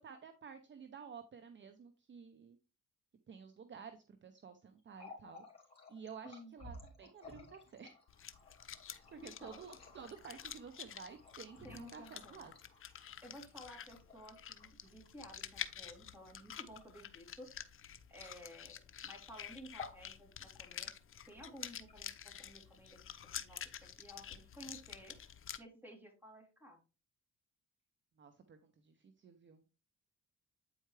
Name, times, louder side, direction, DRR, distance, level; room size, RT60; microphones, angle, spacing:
voice 1, 0.0-2.6 3.3-5.4 5.9-8.0 8.8-12.5 28.2-29.6, right 6 dB, 40° right, 8 dB, 0.8 m, -52 dB
Water tap faucet, 4.8-18.8 19.1-19.3 19.6-20.1 20.4-21.1 21.7-22.5, left 3 dB, 20° left, 2.7 m, -56 dB
sound 1, 8.1-25.6, left 9 dB, 45° left, 0.7 m, -49 dB
voice 2, 9.2-9.6 11.6-12.4 13.2-17.5 18.1-20.9 21.3-23.0 23.4-25.2 25.6-26.8, equal, 5° right, 0 dB, 3.1 m, -54 dB
8.7 x 4.6 x 3.2 m, 0.32 s
cardioid pair, 90°, 30 cm